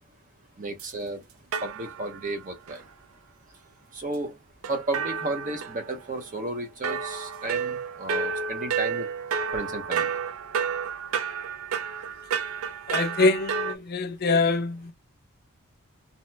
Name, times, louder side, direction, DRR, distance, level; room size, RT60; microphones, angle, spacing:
voice 1, 0.6-1.2 1.6-2.8 3.9-4.4 4.7-9.1 9.5-10.2, right 2 dB, 35° right, 0.7 m, -33 dB
sound 1, 0.8-0.9 1.5-2.3 2.7-2.8 4.6-6.2 6.8-13.7, right 6 dB, 70° right, 0.4 m, -31 dB
voice 2, 12.9-14.9, left 3 dB, 45° left, 0.3 m, -24 dB
2.7 x 2.1 x 3.2 m
head